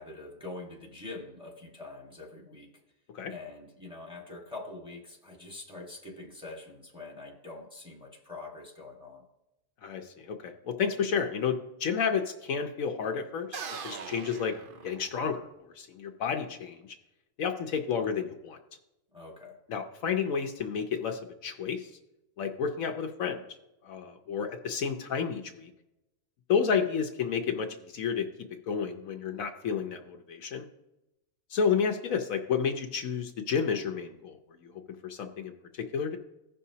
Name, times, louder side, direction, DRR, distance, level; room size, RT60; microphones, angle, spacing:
voice 1, 0.0-2.8 3.3-9.2 19.1-19.6, left 2 dB, 5° right, -1 dB, 1.4 m, -44 dB
voice 2, 9.8-13.6 13.8-14.5 14.8-15.5 15.7-16.8 17.4-18.6 19.7-21.9 22.4-23.4 23.8-25.7 26.5-28.3 28.7-30.7 31.5-34.4 34.6-34.7 35.0-35.5 35.9-36.2, left 6 dB, 70° left, 5 dB, 1.1 m, -31 dB
sound 1, 13.5-15.5, right 5 dB, 55° right, 0.6 m, -41 dB
16.0 x 5.6 x 2.8 m, 0.91 s
omnidirectional pair, 1.5 m